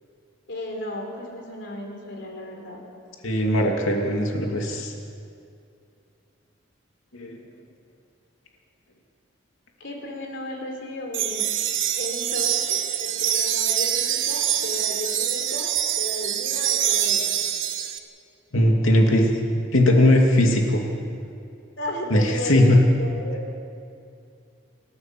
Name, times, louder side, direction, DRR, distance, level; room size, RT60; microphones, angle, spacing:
voice 1, 0.5-2.8 9.8-11.5 12.0-17.3 18.7-19.3 21.8-22.7 23.0-23.6, left 1 dB, 60° left, 1 dB, 4.4 m, -34 dB
voice 2, 3.2-4.9 7.1-7.4 18.5-19.3 19.7-20.8 22.1-22.8, left 1 dB, 90° left, 1 dB, 2.7 m, -19 dB
sound 1, 11.1-18.0, right 10 dB, 70° right, 1.4 m, -25 dB
28.5 x 15.5 x 7.7 m, 2.5 s
head